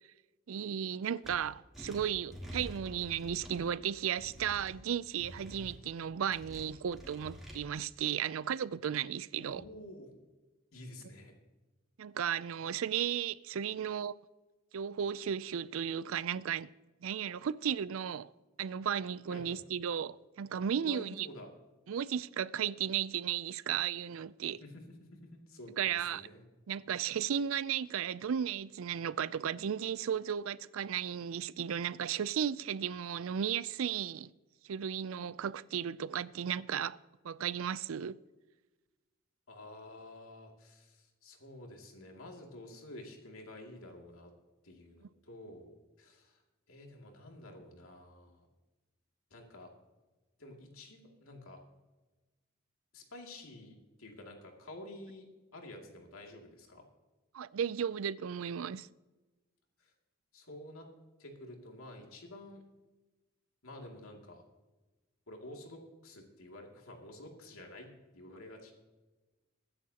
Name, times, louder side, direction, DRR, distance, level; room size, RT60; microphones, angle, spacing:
voice 1, 0.5-9.6 12.0-14.1 14.7-16.7 17.0-18.3 18.6-21.3 21.9-24.6 25.8-26.3 26.7-34.3 34.6-37.0 37.2-38.2 57.3-58.9, right 8 dB, 80° right, 0.4 m, -35 dB
sound 1, 1.2-1.3 1.7-3.6 4.2-4.7 5.2-5.8 6.3-7.6, equal, ahead, 3.1 m, -47 dB
voice 2, 9.4-10.1 10.7-11.3 19.3-19.6 20.8-21.5 24.6-26.4 39.5-44.3 44.6-46.4 46.7-48.5 49.3-49.7 50.4-51.6 52.9-55.3 55.5-56.9 59.8-59.9 60.3-60.9 61.2-62.6 63.6-64.4 65.3-68.7, left 1 dB, 90° left, 2.5 m, -50 dB
21.0 x 10.0 x 2.9 m
head